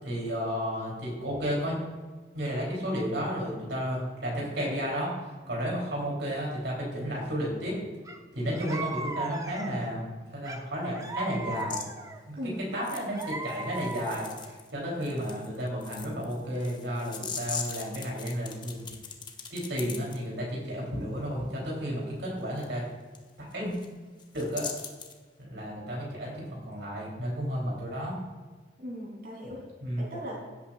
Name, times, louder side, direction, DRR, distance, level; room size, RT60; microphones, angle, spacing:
voice 1, 0.0-1.8 2.3-5.1 5.5-7.8 8.3-10.1 10.3-11.8 12.3-18.9 19.5-22.8 23.4-23.7 24.3-24.7 25.4-28.2 29.8-30.1, equal, 90° right, -4 dB, 3.4 m, -32 dB
sound 1, 8.0-8.2 8.5-9.9 10.4-12.2 12.7-14.5, right 3 dB, 20° right, 0.7 m, -37 dB
sound 2, 11.6-11.9 12.8-14.7 15.0-20.2 22.6-22.7 23.1-23.2 23.5-23.9 24.2-25.2, left 6 dB, 25° left, 0.9 m, -40 dB
voice 2, 12.4-12.7 28.8-29.6 30.0-30.4, equal, 55° right, -4 dB, 3.5 m, -38 dB
16.0 x 8.4 x 2.5 m, 1.4 s
head